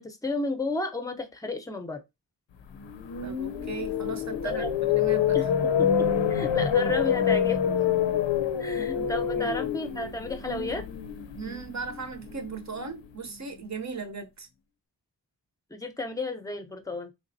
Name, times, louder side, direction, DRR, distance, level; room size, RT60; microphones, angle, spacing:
voice 1, 0.0-2.0 4.4-4.7 5.3-5.5 5.8-7.6 8.6-10.8 15.7-17.1, left 2 dB, 10° left, 0.6 m, -32 dB
sound 1, 2.7-12.9, left 8 dB, 85° left, 0.6 m, -27 dB
voice 2, 3.2-4.6 4.9-5.4 8.7-9.1 9.3-9.5 11.4-14.5, right 5 dB, 40° right, 0.7 m, -38 dB
3.8 x 3.3 x 2.6 m
wide cardioid pair, 95°, 43 cm